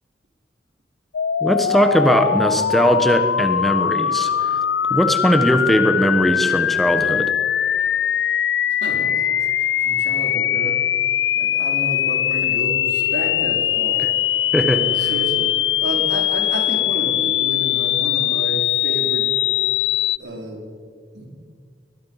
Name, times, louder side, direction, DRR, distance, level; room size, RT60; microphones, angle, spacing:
sound 1, 1.1-20.2, left 10 dB, 85° left, 0.4 m, -21 dB
voice 1, 1.4-4.6 4.9-7.3 14.0-14.1 14.5-15.1, equal, ahead, 7 dB, 1.2 m, -19 dB
voice 2, 8.7-10.8 11.3-14.0 14.6-15.5 15.8-19.3 20.2-20.6 21.1-21.3, right 1 dB, 90° right, 1 dB, 4.8 m, -31 dB
22.0 x 20.5 x 5.8 m, 2.1 s
head